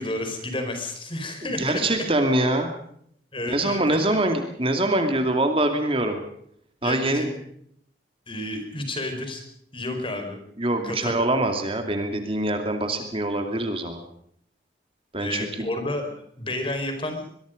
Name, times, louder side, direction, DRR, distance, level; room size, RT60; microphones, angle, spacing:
voice 1, 0.0-1.8 3.3-3.8 6.8-7.4 8.3-9.4 9.7-10.4 10.8-11.1 15.2-16.1 16.4-17.2, left 1 dB, 30° left, 5 dB, 4.8 m, -30 dB
voice 2, 1.6-2.7 3.5-6.2 6.8-7.3 10.6-14.0 15.1-15.7, right 1 dB, 30° right, 5 dB, 2.6 m, -24 dB
23.0 x 23.0 x 5.2 m, 0.68 s
head